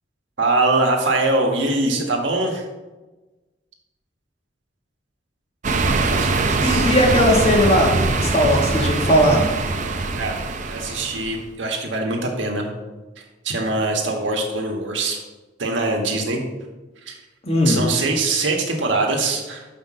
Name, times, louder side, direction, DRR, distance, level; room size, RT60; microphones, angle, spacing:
voice 1, 0.4-2.6 5.9-6.9 10.1-10.4 10.7-12.7 13.2-15.2 15.6-16.4 17.1-17.2 17.6-19.7, right 2 dB, 90° right, 1 dB, 1.4 m, -23 dB
sound 1, 5.6-11.4, right 3 dB, 40° right, 0.6 m, -22 dB
voice 2, 6.6-9.5 17.4-17.8, equal, 35° left, 0 dB, 1.6 m, -18 dB
5.9 x 5.0 x 6.3 m, 1.2 s
head